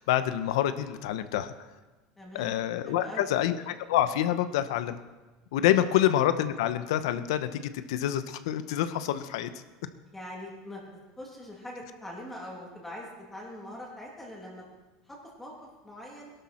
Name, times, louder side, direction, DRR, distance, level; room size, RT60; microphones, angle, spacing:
voice 1, 0.0-1.5 2.3-5.0 5.5-7.6 7.9-9.5, left 12 dB, 90° left, 11 dB, 0.9 m, -27 dB
voice 2, 2.2-3.3 5.8-5.9 10.1-10.8 11.2-14.6 15.1-15.5 15.8-16.3, left 1 dB, 10° left, -3 dB, 2.7 m, -43 dB
17.5 x 12.0 x 4.4 m, 1.2 s
supercardioid pair, 145°, 3 cm